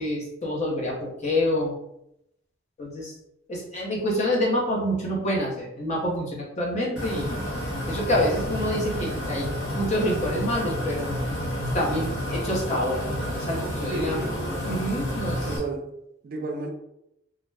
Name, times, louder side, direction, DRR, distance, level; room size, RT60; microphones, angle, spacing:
voice 1, 0.0-1.7 2.8-3.1 3.5-7.4 7.9-11.1 11.7-14.2 14.7-15.6, left 1 dB, 35° left, -4 dB, 0.7 m, -27 dB
sound 1, 7.0-15.6, equal, 65° left, 0.8 m, -30 dB
voice 2, 13.9-14.6 15.4-15.9 16.2-16.7, right 3 dB, 45° right, 2 dB, 0.4 m, -32 dB
2.4 x 2.1 x 3.3 m, 0.82 s
head